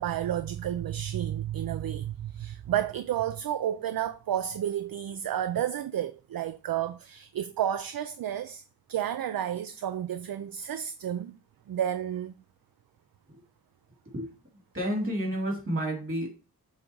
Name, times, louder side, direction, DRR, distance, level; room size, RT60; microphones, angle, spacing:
voice 1, 0.0-8.6 8.9-11.4 11.7-12.3, right 10 dB, 65° right, 0.5 m, -31 dB
voice 2, 14.7-16.3, equal, 35° right, 3.1 m, -30 dB
7.4 x 3.8 x 4.7 m
wide cardioid pair, 140°, 38 cm